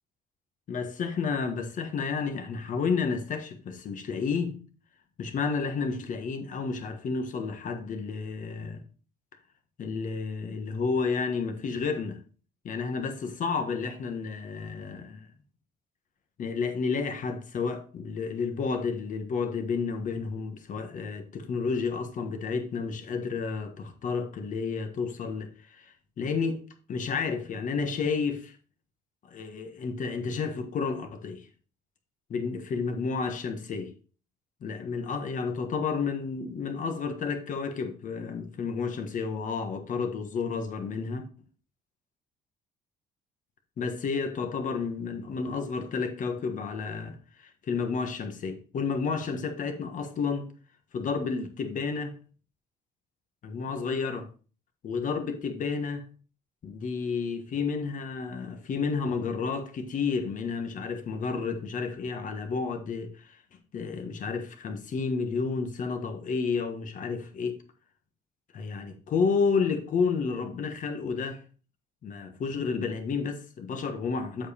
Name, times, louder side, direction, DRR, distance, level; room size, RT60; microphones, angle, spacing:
voice 1, 0.7-4.6 5.2-8.8 9.8-12.2 12.6-15.3 16.4-26.6 26.9-28.5 29.2-31.5 32.3-33.9 34.6-41.3 43.8-50.5 50.9-52.1 53.4-54.3 54.8-56.0 56.6-63.4 63.7-67.6 68.5-71.4 72.0-74.5, left 5 dB, 50° left, 1.5 m, -31 dB
7.9 x 5.2 x 4.3 m
cardioid pair, 110°, 17 cm